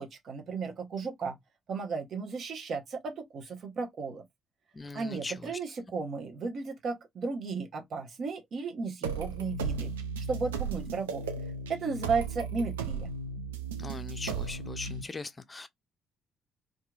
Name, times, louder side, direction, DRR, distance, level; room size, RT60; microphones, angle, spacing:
voice 1, 0.0-1.4 1.7-4.2 4.9-9.9 10.3-11.2 11.7-13.1, right 4 dB, 50° right, 0.7 m, -34 dB
voice 2, 4.7-5.5 13.8-15.7, left 3 dB, 30° left, 0.4 m, -40 dB
sound 1, 9.0-15.0, right 5 dB, 75° right, 0.3 m, -35 dB
2.8 x 2.3 x 2.3 m
figure-of-eight pair, 40°, 0 cm